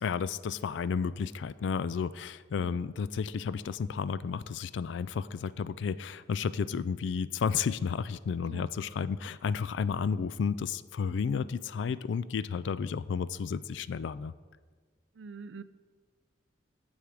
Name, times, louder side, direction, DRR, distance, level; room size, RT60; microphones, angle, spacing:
voice 1, 0.0-14.3, left 6 dB, 70° left, 16 dB, 0.3 m, -32 dB
voice 2, 15.2-15.6, right 5 dB, 75° right, 14 dB, 0.4 m, -44 dB
10.5 x 7.1 x 4.8 m, 1.5 s
head